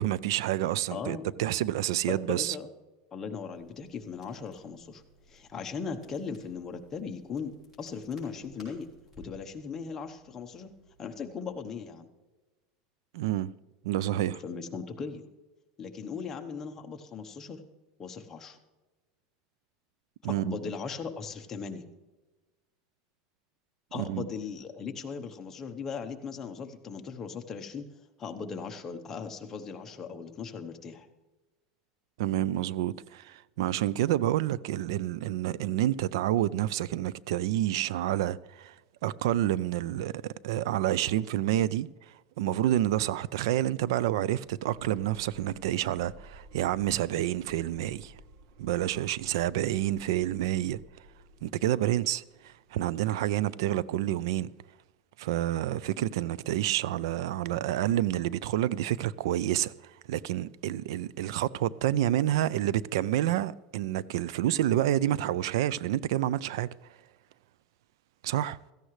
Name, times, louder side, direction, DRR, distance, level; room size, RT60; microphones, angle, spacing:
voice 1, 0.0-2.6 13.1-13.5 13.8-14.4 20.2-20.6 23.9-24.3 32.2-38.7 39.0-41.9 42.4-48.1 48.6-50.8 51.4-54.5 55.2-59.7 60.1-66.7 68.2-68.6, right 13 dB, 80° right, 0.4 m, -28 dB
voice 2, 0.9-1.2 2.1-2.7 3.1-5.0 5.3-7.5 7.8-8.9 9.2-10.7 11.0-12.1 14.4-15.2 15.8-17.6 18.0-18.6 20.4-21.8 23.9-27.9 28.2-31.1, left 5 dB, 20° left, 0.9 m, -38 dB
Crackle, 3.5-11.5, equal, 10° right, 5.3 m, -59 dB
sound 1, 44.5-53.3, right 1 dB, 45° right, 1.1 m, -54 dB
16.5 x 14.0 x 3.2 m
supercardioid pair, 170°, 2 cm